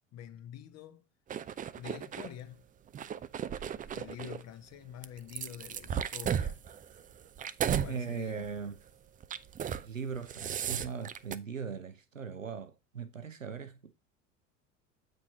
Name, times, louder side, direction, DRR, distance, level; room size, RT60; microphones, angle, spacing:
voice 1, 0.1-1.0 1.8-2.6 3.9-6.6 7.7-8.6, left 10 dB, 40° left, 1.2 m, -46 dB
sound 1, 1.3-2.3 2.9-4.4 5.0-7.9 8.3-8.6 9.2-9.9 10.1-11.4, right 9 dB, 20° right, 0.5 m, -35 dB
voice 2, 7.8-8.7 9.8-13.9, right 6 dB, 90° right, 0.9 m, -39 dB
8.6 x 5.2 x 4.1 m
figure-of-eight pair, 70°, 38 cm